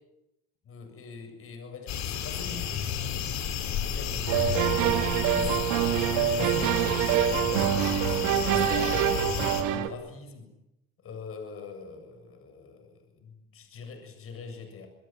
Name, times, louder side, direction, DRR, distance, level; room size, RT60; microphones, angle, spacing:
voice 1, 0.6-5.6 6.4-8.1 8.4-9.1 9.5-10.5 11.0-14.9, left 4 dB, 45° left, 6 dB, 7.6 m, -43 dB
sound 1, 1.9-9.6, left 8 dB, 60° left, 5.0 m, -32 dB
sound 2, 4.3-9.9, right 10 dB, 80° right, 2.5 m, -25 dB
26.5 x 21.5 x 9.5 m, 0.85 s
cardioid pair, 115°, 31 cm